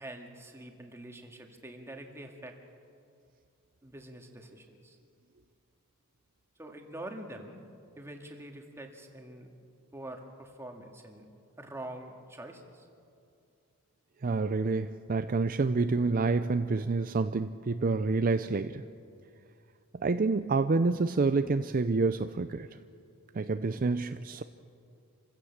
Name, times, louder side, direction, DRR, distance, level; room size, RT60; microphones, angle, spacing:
voice 1, 0.0-2.6 3.8-5.0 6.6-7.6 8.0-9.5 9.9-11.3 11.6-12.9, right 1 dB, 10° right, 3 dB, 2.0 m, -45 dB
voice 2, 14.2-18.8 20.0-22.7 23.3-24.4, right 3 dB, 40° right, 10 dB, 0.5 m, -28 dB
27.5 x 16.0 x 7.3 m, 2.4 s
head